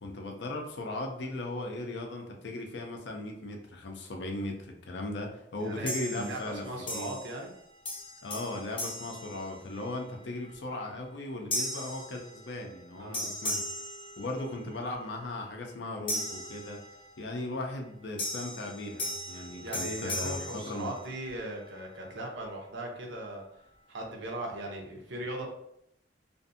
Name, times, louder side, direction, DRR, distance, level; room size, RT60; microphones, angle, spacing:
voice 1, 0.0-6.6 6.9-7.1 8.2-13.6 14.2-16.8 17.2-20.9, left 2 dB, 70° left, 2 dB, 0.5 m, -37 dB
voice 2, 5.6-7.5 13.0-13.3 19.6-23.4 23.9-25.5, right 1 dB, 80° right, 0 dB, 0.7 m, -38 dB
sound 1, 5.9-6.5 6.9-7.6 7.9-10.0 10.5-10.8 11.5-12.8 13.1-14.8 16.1-17.2 18.2-21.4, left 1 dB, 30° left, 0.6 m, -37 dB
2.5 x 2.4 x 2.6 m, 0.74 s
head